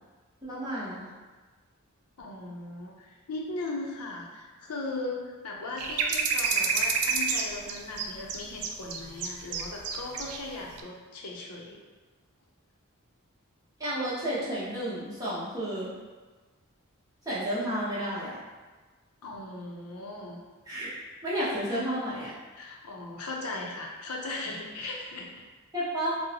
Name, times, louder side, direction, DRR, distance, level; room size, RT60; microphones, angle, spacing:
voice 1, 0.4-1.1 13.8-15.9 17.2-18.4 20.7-20.9 21.2-22.3 25.7-26.1, equal, 15° right, -10 dB, 0.8 m, -31 dB
voice 2, 2.2-11.8 19.2-20.4 20.7-20.8 21.7-21.9 22.5-25.4, left 2 dB, 85° left, -1 dB, 0.5 m, -38 dB
sound 1, 5.8-10.4 10.7-10.8, right 5 dB, 85° right, 0.4 m, -28 dB
3.8 x 2.0 x 2.8 m, 1.3 s
head